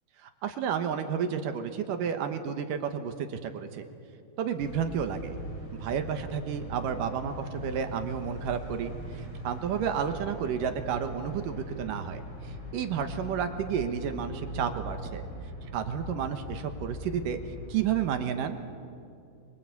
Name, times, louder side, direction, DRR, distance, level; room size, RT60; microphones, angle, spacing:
voice 1, 0.4-3.9 4.4-5.4 5.7-12.2 12.7-15.3 15.7-17.4 17.7-18.6, right 8 dB, 65° right, 7 dB, 2.5 m, -31 dB
sound 1, 4.6-18.1, equal, 20° left, 4.3 m, -41 dB
25.5 x 23.5 x 8.4 m, 2.5 s
omnidirectional pair, 4.7 m